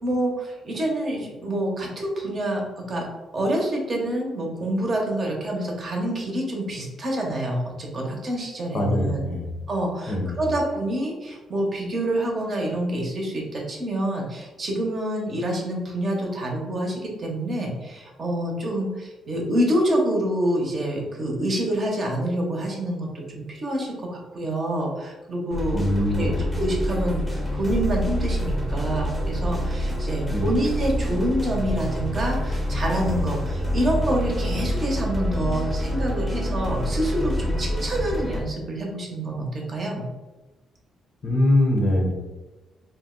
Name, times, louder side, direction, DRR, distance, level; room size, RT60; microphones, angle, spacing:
voice 1, 0.0-3.0 3.3-9.2 9.7-25.8 26.1-40.0, right 1 dB, 45° right, 0 dB, 0.8 m, -27 dB
voice 2, 8.7-9.4 10.1-10.4 25.7-26.5 30.3-30.5 41.2-42.1, left 1 dB, 45° left, 1 dB, 0.7 m, -22 dB
sound 1, 25.5-38.4, equal, 5° left, 0.7 m, -27 dB
2.5 x 2.1 x 3.7 m, 1.1 s
cardioid pair, 90°, 0 cm